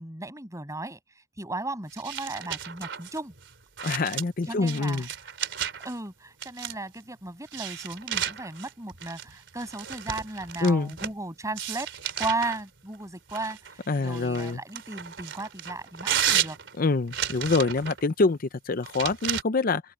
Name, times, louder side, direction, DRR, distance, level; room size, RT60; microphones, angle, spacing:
voice 1, 0.0-3.3 4.5-5.1 5.8-11.9 12.2-16.6, right 2 dB, 15° right, 7.2 m, -35 dB
sound 1, 1.9-5.9 6.4-7.0 7.5-11.2 11.6-12.6 13.3-18.0 18.8-19.4, right 10 dB, 70° right, 4.0 m, -33 dB
voice 2, 3.8-5.1 10.6-10.9 13.9-14.6 16.8-19.8, left 3 dB, 50° left, 0.6 m, -25 dB
open air
head